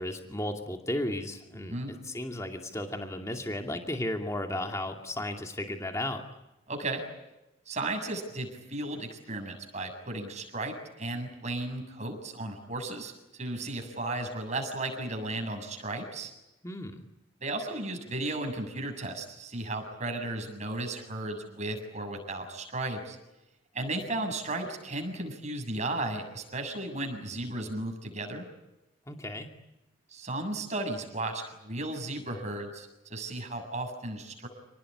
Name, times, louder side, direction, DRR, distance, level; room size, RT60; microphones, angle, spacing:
voice 1, 0.0-6.2 16.6-17.0 29.1-29.5, left 1 dB, 15° left, 3 dB, 2.5 m, -34 dB
voice 2, 6.7-7.0 7.7-16.3 17.4-23.2 23.7-28.5 30.1-34.5, right 2 dB, 35° right, 5 dB, 7.3 m, -35 dB
30.0 x 19.5 x 9.9 m, 0.96 s
head